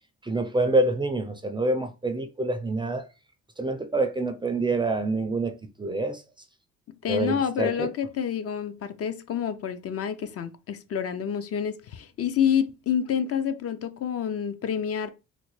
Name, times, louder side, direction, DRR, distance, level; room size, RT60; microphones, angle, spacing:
voice 1, 0.2-3.1 3.6-6.2 7.1-7.9, right 2 dB, 15° right, 0.4 m, -26 dB
voice 2, 7.0-15.1, left 8 dB, 50° left, 0.5 m, -28 dB
3.9 x 2.1 x 3.1 m
cardioid pair, 90°, 30 cm